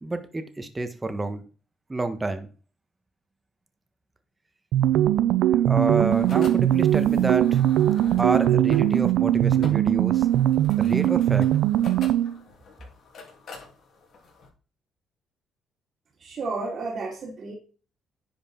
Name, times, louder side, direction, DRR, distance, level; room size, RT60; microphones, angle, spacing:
voice 1, 0.0-1.4 1.9-2.5 5.7-7.6 8.2-10.3 10.8-11.5, right 2 dB, 20° right, 9 dB, 1.3 m, -29 dB
sound 1, 4.7-12.4, right 12 dB, 85° right, 0.5 m, -21 dB
sound 2, 6.1-14.5, left 3 dB, 60° left, 3.2 m, -45 dB
voice 2, 16.2-17.5, right 3 dB, 55° right, -2 dB, 2.6 m, -32 dB
10.0 x 5.2 x 3.8 m, 0.37 s
cardioid pair, 80°, 0 cm